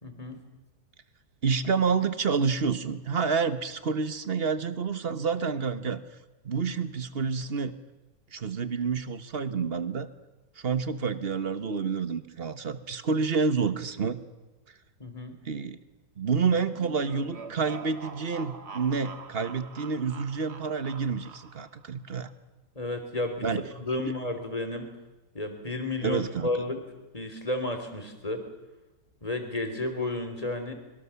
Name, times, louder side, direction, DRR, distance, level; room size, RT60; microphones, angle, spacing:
voice 1, 0.0-0.4 15.0-15.4 22.7-24.9 25.3-26.8 27.1-28.4 29.2-30.7, left 2 dB, 20° left, 6 dB, 3.2 m, -32 dB
voice 2, 1.4-6.0 6.4-7.7 8.3-10.1 10.6-14.2 15.4-15.8 16.2-22.3 23.4-23.6 24.0-24.1 26.0-26.5, right 5 dB, 40° right, 12 dB, 1.2 m, -28 dB
sound 1, 16.7-21.8, right 5 dB, 65° right, 2.3 m, -45 dB
24.5 x 22.5 x 7.0 m, 1.1 s
omnidirectional pair, 1.9 m